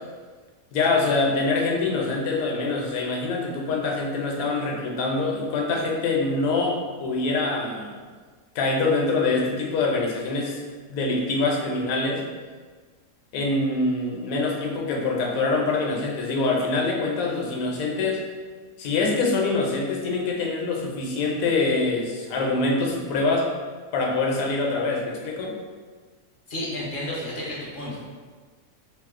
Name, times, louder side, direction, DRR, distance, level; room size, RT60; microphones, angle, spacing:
voice 1, 0.7-8.0 8.5-10.6 10.9-12.2 13.3-18.2 18.8-23.5 23.9-25.5, left 3 dB, 75° left, -1 dB, 1.0 m, -24 dB
voice 2, 26.5-28.0, left 1 dB, 50° left, -5 dB, 0.6 m, -31 dB
2.9 x 2.0 x 3.5 m, 1.5 s
omnidirectional pair, 1.5 m